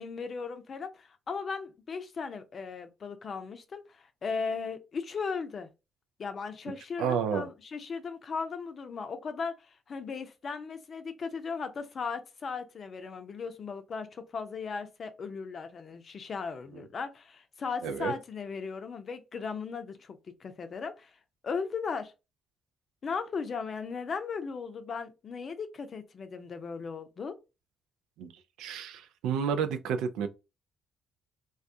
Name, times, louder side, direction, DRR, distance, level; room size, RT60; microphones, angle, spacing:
voice 1, 0.0-5.7 6.2-21.2 21.4-22.1 23.0-27.4, left 5 dB, 50° left, 0.5 m, -37 dB
voice 2, 7.0-7.5 17.8-18.1 28.2-28.3 28.6-30.3, right 7 dB, 80° right, 0.3 m, -30 dB
2.3 x 2.2 x 2.6 m
hypercardioid pair, 50°, 0 cm